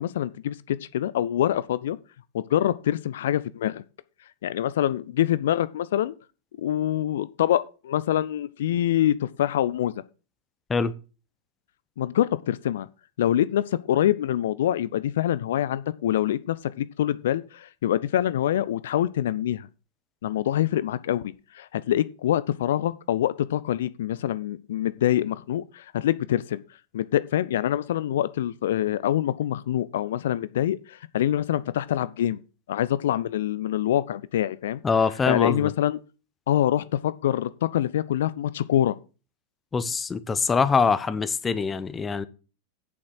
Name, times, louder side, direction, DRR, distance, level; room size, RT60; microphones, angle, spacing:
voice 1, 0.0-2.0 2.3-3.8 4.4-6.1 6.6-9.9 12.0-12.9 13.2-19.7 20.2-26.6 26.9-32.4 32.7-34.8 35.3-36.0 36.5-38.9, left 11 dB, 60° left, 0.5 m, -25 dB
voice 2, 34.8-35.7 39.7-42.3, left 5 dB, 15° left, 0.9 m, -24 dB
8.6 x 7.3 x 6.4 m
figure-of-eight pair, 90°, 0 cm